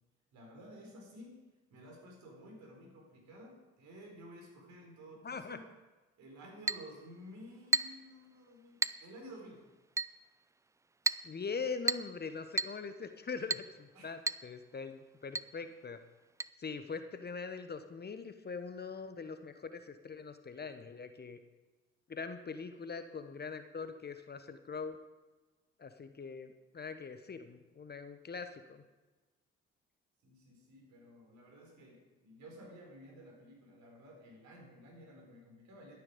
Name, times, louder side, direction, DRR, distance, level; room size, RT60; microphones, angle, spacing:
voice 1, 0.3-1.4 1.7-5.7 6.2-9.6 13.9-14.1 30.2-36.0, equal, 60° right, 0 dB, 4.3 m, -53 dB
voice 2, 5.2-5.6 11.2-16.0 16.6-21.4 22.1-25.0 25.8-28.8, left 5 dB, 30° left, 9 dB, 1.0 m, -42 dB
Chink clink, 6.7-6.9 7.7-8.0 8.8-9.0 10.0-10.2 11.1-11.3 11.9-12.1 12.6-12.8 13.5-13.7 14.3-14.5 14.7-14.8 15.3-15.5 16.4-16.5, right 3 dB, 10° right, 0.4 m, -32 dB
12.0 x 10.5 x 5.1 m, 1.2 s
figure-of-eight pair, 45°, 32 cm